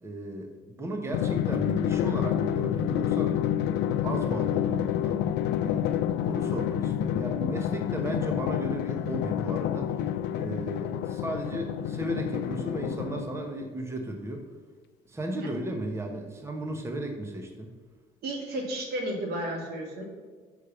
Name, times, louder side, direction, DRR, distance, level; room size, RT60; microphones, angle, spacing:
voice 1, 0.0-3.4 4.0-5.2 5.6-10.0 10.3-14.4 15.1-17.7, right 1 dB, 15° right, 3 dB, 1.0 m, -35 dB
Drum, 1.1-13.5, left 10 dB, 85° left, 0.5 m, -28 dB
voice 2, 18.2-20.0, right 1 dB, 70° right, 1 dB, 2.2 m, -33 dB
6.4 x 5.1 x 6.9 m, 1.5 s
cardioid pair, 110°, 17 cm